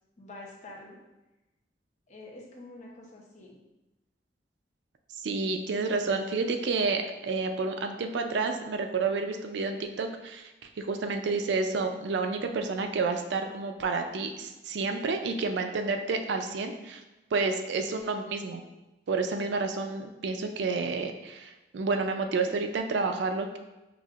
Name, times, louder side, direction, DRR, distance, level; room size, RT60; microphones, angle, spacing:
voice 1, 0.2-1.0 2.1-3.6, left 2 dB, 45° left, -2 dB, 0.8 m, -46 dB
voice 2, 5.2-17.0 17.3-18.6 19.1-23.6, right 4 dB, 80° right, 5 dB, 0.4 m, -30 dB
5.9 x 2.6 x 2.4 m, 1.0 s
head